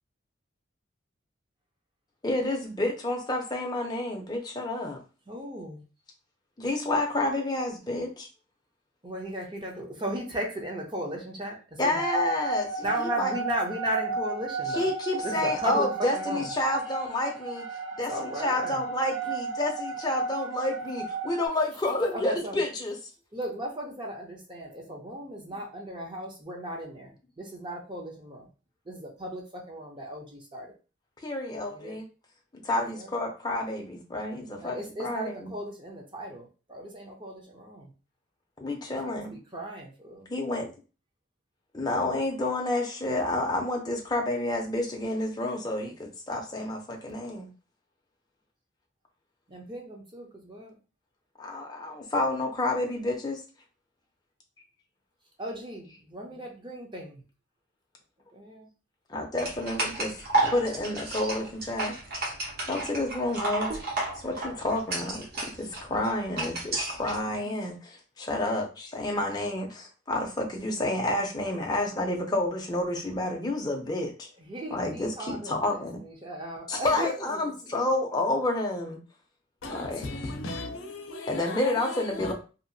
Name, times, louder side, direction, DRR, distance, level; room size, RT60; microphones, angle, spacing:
voice 1, 2.2-5.0 6.6-8.3 11.8-13.3 14.7-17.6 18.0-23.0 31.2-32.0 32.6-35.5 38.6-39.4 40.3-40.7 41.7-47.5 51.4-53.4 59.1-62.0 62.6-63.7 64.1-65.2 65.5-74.3 74.7-76.0 76.7-79.0 79.7-80.0 81.3-82.3, left 2 dB, 20° left, 0.5 m, -29 dB
voice 2, 5.3-5.8 9.0-12.0 12.8-14.9 15.2-16.5 18.1-18.9 22.1-22.6 23.3-28.5 28.9-30.7 31.7-32.0 32.9-33.1 34.6-37.9 39.0-40.3 49.5-50.8 55.4-57.2 58.3-58.7 74.4-77.8, right 1 dB, 25° right, 0.6 m, -36 dB
sound 1, 12.0-21.5, right 4 dB, 80° right, 0.7 m, -33 dB
sound 2, 59.4-67.2, right 2 dB, 50° right, 0.8 m, -32 dB
voice 3, 79.6-82.3, left 2 dB, 85° left, 0.6 m, -37 dB
2.8 x 2.5 x 2.6 m
head